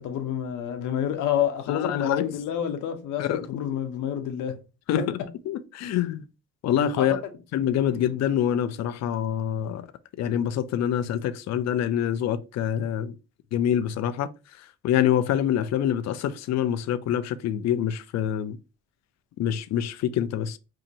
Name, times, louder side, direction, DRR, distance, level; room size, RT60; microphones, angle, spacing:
voice 1, 0.0-4.6 5.0-5.1 7.0-7.3, left 9 dB, 85° left, 0.8 m, -28 dB
voice 2, 1.7-2.2 3.2-3.4 4.9-5.0 5.5-6.2 6.6-7.2 7.5-9.9 10.2-13.2 13.5-14.3 14.8-18.6 19.4-20.6, left 10 dB, 60° left, 0.4 m, -26 dB
2.7 x 2.5 x 3.9 m
cardioid pair, 90°, 30 cm